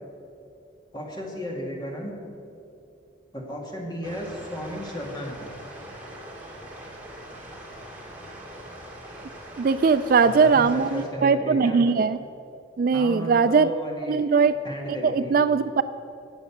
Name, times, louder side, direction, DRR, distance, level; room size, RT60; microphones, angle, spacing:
voice 1, 0.9-2.1 3.3-5.5 10.2-11.9 12.9-14.2 14.6-15.4, equal, 20° left, -1 dB, 2.1 m, -34 dB
sound 1, 4.0-11.1, right 1 dB, 10° right, 2.1 m, -42 dB
voice 2, 9.6-12.2 12.8-13.7 14.1-14.5 15.0-15.8, right 5 dB, 45° right, 12 dB, 0.3 m, -20 dB
18.0 x 7.1 x 7.2 m, 2.6 s
head